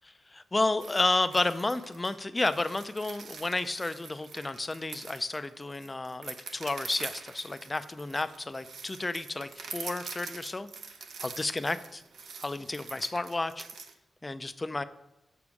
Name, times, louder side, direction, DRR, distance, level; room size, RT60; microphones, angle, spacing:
voice 1, 0.0-10.7 11.2-12.0 12.4-13.6 14.2-14.8, left 2 dB, 20° left, 11 dB, 0.4 m, -31 dB
sound 1, 0.8-13.9, right 5 dB, 80° right, 0.7 m, -45 dB
7.3 x 7.0 x 4.8 m, 0.93 s
wide cardioid pair, 155°, 0 cm